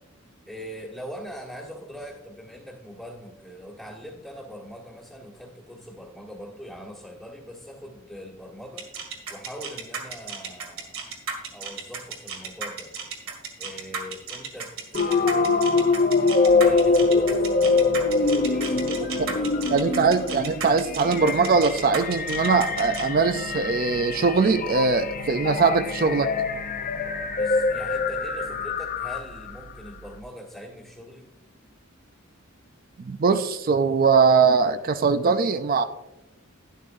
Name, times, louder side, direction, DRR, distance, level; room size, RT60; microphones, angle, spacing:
voice 1, 0.5-8.9 9.3-11.1 11.5-12.9 13.6-20.0 27.3-31.3, equal, ahead, -6 dB, 1.4 m, -42 dB
sound 1, 8.8-23.0, right 5 dB, 80° right, 2.0 m, -34 dB
sound 2, 14.9-29.5, left 4 dB, 40° left, 0.6 m, -24 dB
sound 3, 16.5-30.2, right 4 dB, 65° left, 2.9 m, -48 dB
voice 2, 19.7-26.3 33.0-35.8, right 4 dB, 45° right, 10 dB, 0.4 m, -21 dB
12.0 x 11.0 x 2.6 m, 0.99 s
head